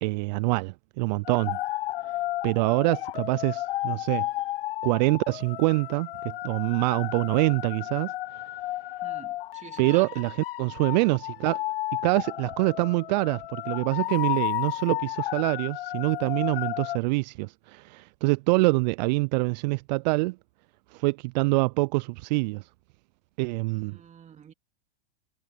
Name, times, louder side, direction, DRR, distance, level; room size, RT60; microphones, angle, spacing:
voice 1, 0.0-1.6 2.4-4.3 4.8-8.1 9.8-10.3 10.6-11.6 12.0-20.4 20.9-22.6 23.4-24.0, right 26 dB, 45° right, 0.4 m, -25 dB
sound 1, 1.3-17.0, left 16 dB, 65° left, 1.0 m, -33 dB
voice 2, 9.0-10.1 23.7-24.5, right 8 dB, 25° right, 2.3 m, -47 dB
hypercardioid pair, 105°, 30 cm